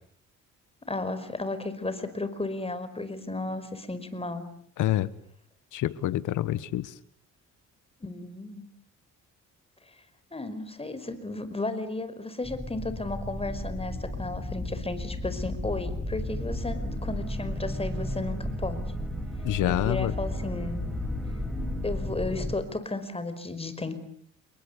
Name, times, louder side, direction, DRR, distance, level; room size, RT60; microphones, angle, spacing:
voice 1, 0.9-4.4 8.0-8.7 10.3-18.8 19.6-20.8 21.8-23.9, left 2 dB, 20° left, 5.2 m, -34 dB
voice 2, 4.8-5.1 5.7-7.0 19.4-20.1, left 14 dB, 85° left, 1.5 m, -27 dB
Dark Ambient Synth, 12.4-22.6, left 1 dB, ahead, 7.5 m, -33 dB
29.0 x 23.5 x 8.2 m
cardioid pair, 90°, 30 cm